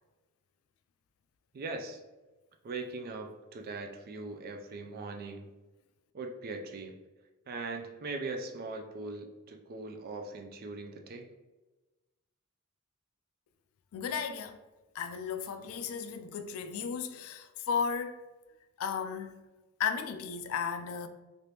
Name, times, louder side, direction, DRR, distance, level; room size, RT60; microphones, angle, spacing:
voice 1, 1.5-2.0 2.6-5.5 6.1-7.0 7.5-11.3, right 3 dB, 45° right, 0.4 m, -40 dB
voice 2, 13.9-14.6 14.9-18.3 18.8-19.4 19.8-21.1, left 6 dB, 80° left, 0.3 m, -34 dB
3.3 x 2.5 x 2.8 m
head